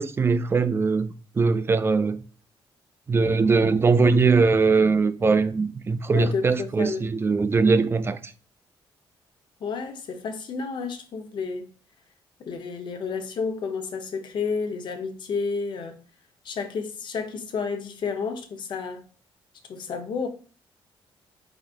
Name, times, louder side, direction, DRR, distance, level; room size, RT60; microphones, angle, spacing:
voice 1, 0.0-2.2 3.1-8.3, right 4 dB, 25° right, 0.4 m, -21 dB
voice 2, 6.1-7.1 9.6-11.7 12.4-16.0 16.4-19.0 19.7-20.3, left 5 dB, 60° left, 1.0 m, -31 dB
4.8 x 4.1 x 2.5 m
cardioid pair, 120°, 9 cm